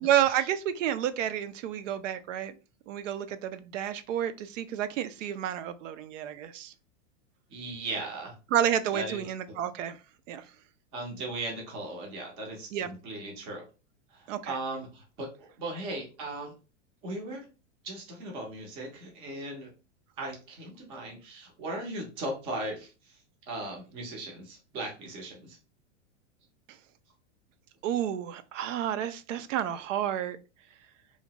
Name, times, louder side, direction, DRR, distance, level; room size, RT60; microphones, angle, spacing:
voice 1, 0.0-2.5 2.9-6.7 8.5-10.0 10.3-10.4 12.7-12.9 14.3-14.6 27.8-30.4, right 10 dB, 80° right, 0.5 m, -30 dB
voice 2, 7.5-8.3 8.9-9.2 10.9-13.6 14.5-16.5 17.0-17.4 17.8-19.7 20.2-22.9 23.5-25.6, right 2 dB, 15° right, 0.4 m, -37 dB
2.8 x 2.1 x 2.7 m
supercardioid pair, 165°, 37 cm